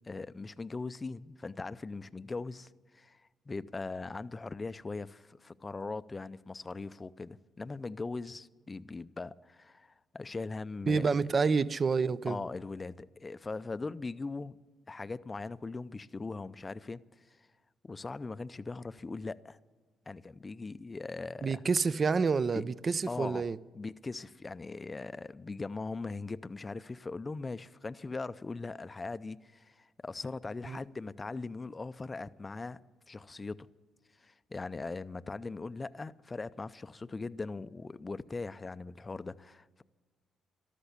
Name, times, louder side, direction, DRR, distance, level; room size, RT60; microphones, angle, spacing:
voice 1, 0.0-11.3 12.3-14.6 14.9-17.4 17.8-19.6 20.1-21.6 22.5-22.6 23.1-23.5 23.7-32.8 33.1-33.7 34.2-39.8, left 3 dB, 25° left, 0.5 m, -40 dB
voice 2, 10.9-12.4 21.4-23.6 30.6-30.8, right 5 dB, 40° right, 0.5 m, -28 dB
13.5 x 12.5 x 8.5 m
cardioid pair, 90°, 0 cm